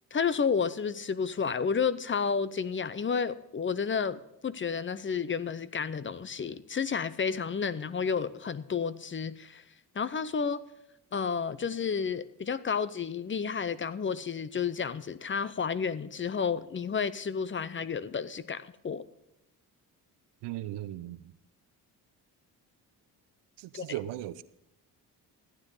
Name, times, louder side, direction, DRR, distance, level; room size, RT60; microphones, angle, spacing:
voice 1, 0.1-9.6 9.9-10.6 11.1-19.0 23.7-23.9, left 6 dB, 30° left, 0.7 m, -31 dB
voice 2, 20.4-21.4 23.6-24.4, right 14 dB, 85° right, 0.7 m, -37 dB
15.0 x 9.6 x 4.0 m
supercardioid pair, 70°, 41 cm